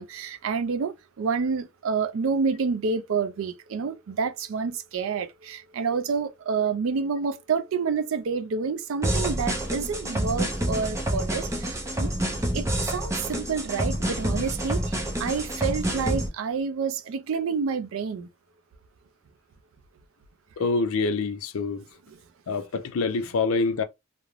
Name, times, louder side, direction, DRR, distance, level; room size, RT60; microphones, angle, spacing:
voice 1, 0.0-12.1 12.5-18.3 22.1-22.2, right 5 dB, 70° right, 0.4 m, -28 dB
sound 1, 9.0-16.3, right 1 dB, 15° right, 0.6 m, -28 dB
voice 2, 20.6-21.8 22.5-23.8, left 4 dB, 75° left, 0.4 m, -26 dB
2.4 x 2.0 x 3.0 m
head